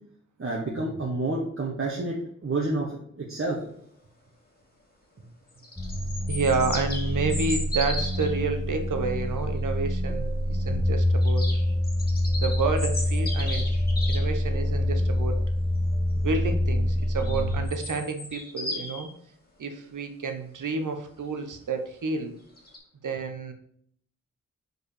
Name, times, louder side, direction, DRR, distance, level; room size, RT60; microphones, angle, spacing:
voice 1, 0.4-3.6, right 2 dB, 45° right, -3 dB, 1.4 m, -29 dB
sound 1, 5.5-8.4 11.2-14.3 17.2-19.0 22.6-22.8, left 1 dB, 30° left, 2.1 m, -35 dB
sound 2, 5.8-17.7, left 1 dB, ahead, 1.8 m, -26 dB
voice 2, 6.3-11.5 12.3-13.7 14.1-15.4 16.1-19.1 19.6-22.3 23.0-23.5, right 4 dB, 75° right, 6 dB, 1.0 m, -30 dB
4.9 x 4.8 x 4.8 m, 0.66 s
cardioid pair, 55°, 31 cm